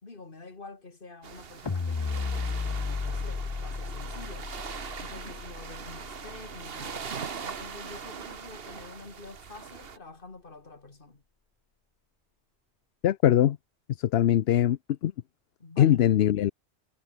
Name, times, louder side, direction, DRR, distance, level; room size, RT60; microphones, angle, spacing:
voice 1, 0.0-4.5 5.0-7.1 7.4-11.2 15.6-16.0, left 3 dB, 50° left, 2.5 m, -47 dB
sound 1, 1.2-10.0, right 6 dB, 60° right, 1.4 m, -41 dB
sound 2, 1.7-8.0, left 4 dB, 25° left, 0.7 m, -35 dB
voice 2, 13.0-13.6 14.0-15.1 15.8-16.5, left 11 dB, 70° left, 0.8 m, -22 dB
omnidirectional pair, 1.2 m